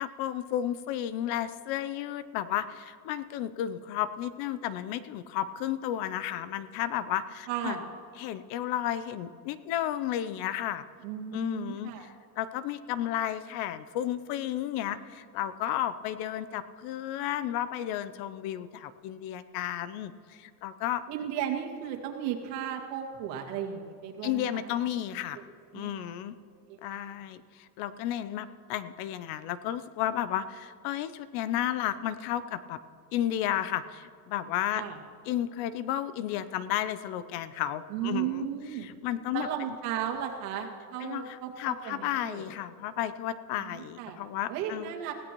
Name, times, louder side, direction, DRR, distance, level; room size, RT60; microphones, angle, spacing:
voice 1, 0.0-7.8 8.1-10.8 11.3-21.0 24.2-25.4 25.7-26.3 26.8-32.8 33.1-34.8 35.2-39.8 41.0-44.9, left 11 dB, 50° left, 14 dB, 0.7 m, -33 dB
voice 2, 7.5-7.8 11.0-12.1 21.1-24.7 25.7-26.1 26.4-27.2 34.7-35.0 37.9-38.9 39.3-42.5 43.6-44.2 44.5-45.1, right 9 dB, 65° right, 1 dB, 2.3 m, -35 dB
20.5 x 16.5 x 3.1 m, 2.1 s
supercardioid pair, 140°, 48 cm